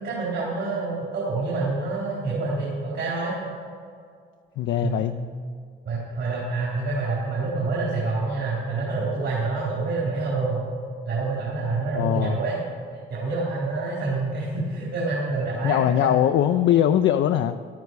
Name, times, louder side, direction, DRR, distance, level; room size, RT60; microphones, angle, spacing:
voice 1, 0.0-3.3 4.8-5.0 5.9-10.6 11.0-12.6 13.1-16.2, right 3 dB, 70° right, -6 dB, 3.9 m, -27 dB
voice 2, 4.6-5.1 11.9-12.4 15.6-17.6, left 11 dB, 75° left, 8 dB, 0.5 m, -21 dB
13.5 x 13.0 x 4.7 m, 2.2 s
cardioid pair, 90°, 20 cm